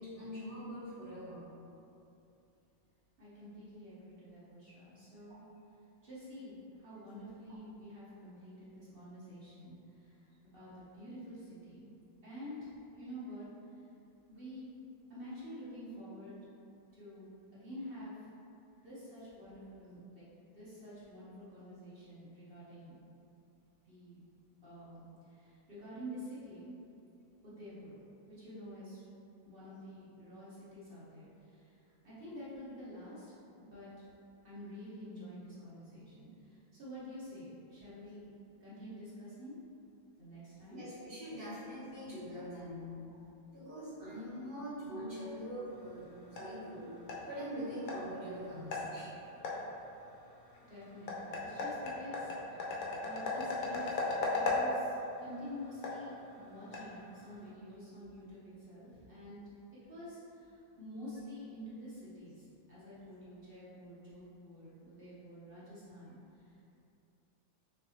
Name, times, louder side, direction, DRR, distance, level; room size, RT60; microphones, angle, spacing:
voice 1, 0.0-1.4 40.7-42.9 43.5-46.9 47.2-49.1, equal, 30° right, -18 dB, 1.4 m, -43 dB
voice 2, 3.2-5.4 6.0-11.9 12.2-13.8 14.3-14.7 15.1-16.3 16.9-18.3 18.8-20.2 20.5-22.9 23.8-24.2 24.6-26.7 27.4-28.0 28.3-29.0 29.4-34.1 34.4-38.3 38.6-39.6 40.2-40.8 50.7-54.0 54.3-59.4 59.9-66.7, equal, 45° right, -10 dB, 0.7 m, -48 dB
sound 1, 45.7-57.5, left 2 dB, 90° left, 1.4 m, -39 dB
5.4 x 2.6 x 2.7 m, 2.7 s
omnidirectional pair, 2.1 m